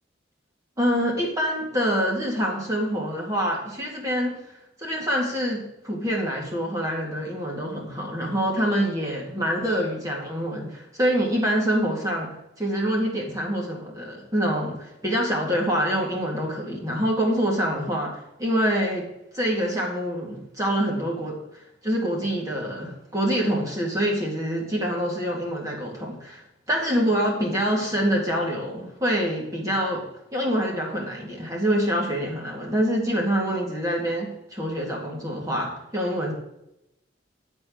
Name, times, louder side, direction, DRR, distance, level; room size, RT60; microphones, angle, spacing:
voice 1, 0.8-4.4 4.8-19.1 19.3-21.4 21.8-36.3, equal, 15° right, -2 dB, 2.2 m, -26 dB
10.5 x 4.6 x 7.7 m, 0.87 s
head